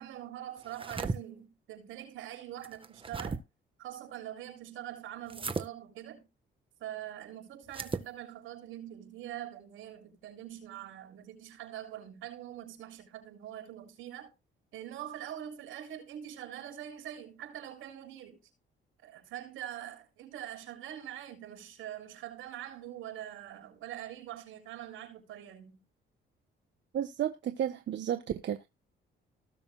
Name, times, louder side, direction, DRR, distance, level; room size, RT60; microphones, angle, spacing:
voice 1, 0.0-3.4 3.8-6.3 6.8-14.3 14.7-18.4 19.0-25.8, right 11 dB, 90° right, 7.1 m, -44 dB
sound 1, 0.6-1.2 2.6-3.4 5.3-5.7 7.7-8.1, right 4 dB, 25° right, 1.6 m, -36 dB
voice 2, 26.9-28.7, right 10 dB, 65° right, 1.4 m, -32 dB
19.5 x 7.0 x 2.5 m
cardioid pair, 90°, 20 cm